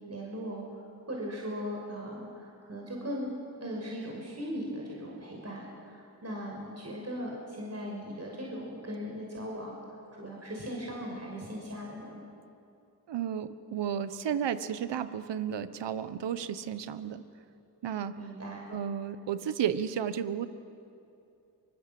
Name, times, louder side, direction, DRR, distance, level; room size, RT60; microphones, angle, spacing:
voice 1, 0.1-0.6 1.1-3.3 3.6-9.8 10.2-12.2 18.2-18.7, equal, 35° right, -2 dB, 6.3 m, -38 dB
voice 2, 13.1-17.2 17.8-18.1 18.7-20.5, right 9 dB, 80° right, 12 dB, 1.2 m, -33 dB
24.0 x 22.0 x 7.7 m, 2.6 s
supercardioid pair, 45°, 42 cm